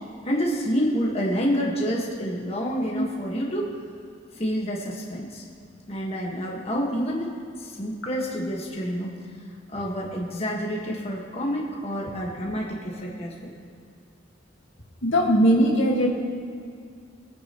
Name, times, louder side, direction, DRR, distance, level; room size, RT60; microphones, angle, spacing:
voice 1, 0.2-3.7 4.3-5.4 5.9-9.2 9.7-13.5, equal, 30° left, -3 dB, 1.6 m, -28 dB
voice 2, 15.0-16.1, equal, 75° left, -1 dB, 1.9 m, -19 dB
24.0 x 9.4 x 3.1 m, 2.2 s
head